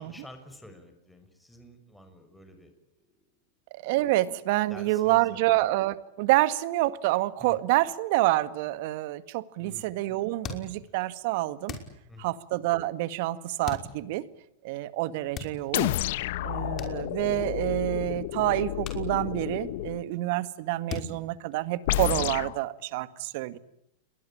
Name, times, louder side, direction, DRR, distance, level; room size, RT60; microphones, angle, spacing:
voice 1, 0.0-2.7 4.7-5.7 7.4-7.6 9.6-9.9 12.1-12.4 15.2-15.4, left 1 dB, 5° left, 7 dB, 6.3 m, -49 dB
voice 2, 3.7-11.7 12.2-14.2 14.6-15.9 16.4-23.6, right 17 dB, 60° right, 14 dB, 1.9 m, -27 dB
sound 1, 10.4-11.1 11.7-12.4 13.6-14.3 15.2-16.0 16.8-17.6 17.9-18.1 18.8-19.8 20.1-20.5 20.9-22.1, left 5 dB, 35° left, 5.7 m, -41 dB
sound 2, 15.7-20.0 21.9-22.6, left 16 dB, 65° left, 1.0 m, -30 dB
29.0 x 22.0 x 8.9 m, 0.81 s
hypercardioid pair, 110°, 0 cm